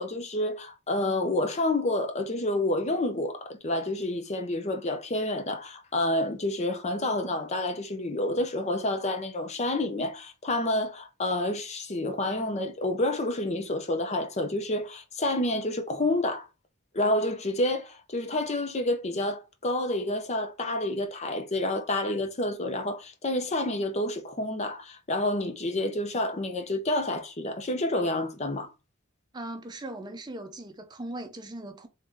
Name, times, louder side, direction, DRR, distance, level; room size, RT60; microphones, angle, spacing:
voice 1, 0.0-16.5 16.9-28.7, left 1 dB, 30° left, 0.6 m, -29 dB
voice 2, 29.3-31.9, right 1 dB, 20° right, 0.6 m, -39 dB
3.5 x 2.8 x 3.7 m
head